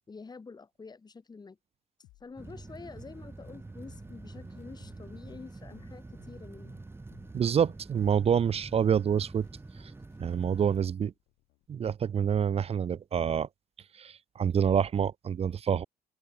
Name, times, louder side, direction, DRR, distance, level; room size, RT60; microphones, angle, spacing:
voice 1, 0.1-1.6 2.2-6.8, left 4 dB, 25° left, 4.1 m, -47 dB
sound 1, 2.0-11.7, left 20 dB, 90° left, 7.0 m, -61 dB
sound 2, 2.4-10.8, right 3 dB, 15° right, 1.5 m, -46 dB
voice 2, 7.3-9.5 10.2-11.1 11.7-13.5 14.0-15.8, right 8 dB, 35° right, 0.7 m, -27 dB
open air
cardioid pair, 110°, 17 cm